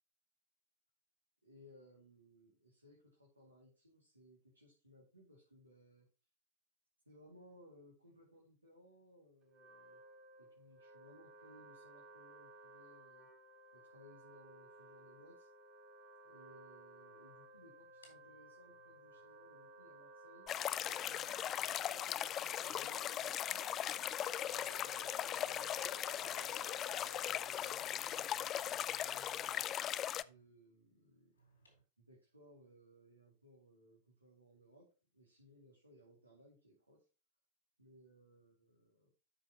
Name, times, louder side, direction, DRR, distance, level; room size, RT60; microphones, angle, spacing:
voice 1, 1.4-6.1 7.1-10.0 10.4-13.3 13.7-15.5 16.2-20.5 21.1-23.7 24.4-29.7 30.2-31.3 32.0-37.1 37.8-39.1, equal, 85° right, -3 dB, 2.4 m, -63 dB
Wind instrument woodwind instrument, 9.4-27.6, right 2 dB, 30° right, 2.3 m, -57 dB
sound 1, 16.3-19.5 20.4-30.5 31.3-31.8, equal, 75° left, 3.8 m, -69 dB
sound 2, 20.5-30.2, left 11 dB, 30° left, 0.4 m, -39 dB
12.5 x 5.5 x 2.9 m, 0.33 s
figure-of-eight pair, 90°, 0 cm